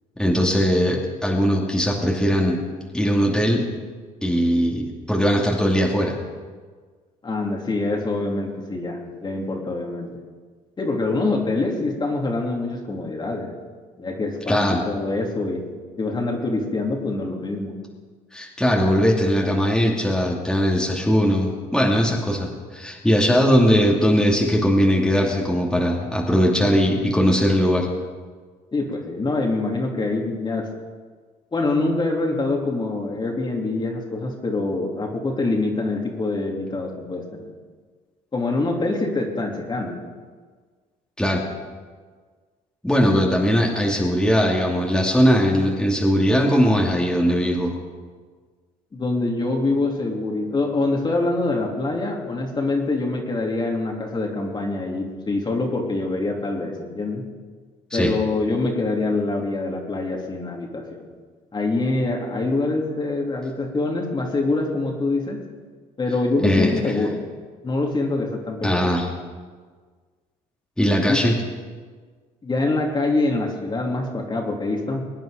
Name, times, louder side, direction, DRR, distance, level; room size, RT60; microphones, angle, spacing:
voice 1, 0.2-2.6 2.9-3.6 4.2-6.2 14.5-14.8 18.3-27.9 41.2-41.4 42.8-47.7 57.9-58.1 66.4-66.7 68.6-69.1 70.8-71.3, equal, 5° left, -2 dB, 2.6 m, -20 dB
voice 2, 7.2-10.1 10.8-13.5 14.0-15.6 16.0-17.8 21.8-22.1 28.7-30.7 31.5-37.5 38.3-40.0 48.9-57.3 57.9-61.1 61.5-65.4 66.0-67.2 67.6-68.9 71.1-71.2 72.4-75.0, left 2 dB, 30° left, 0 dB, 3.1 m, -25 dB
23.0 x 9.3 x 5.1 m, 1.5 s
supercardioid pair, 85°, 16 cm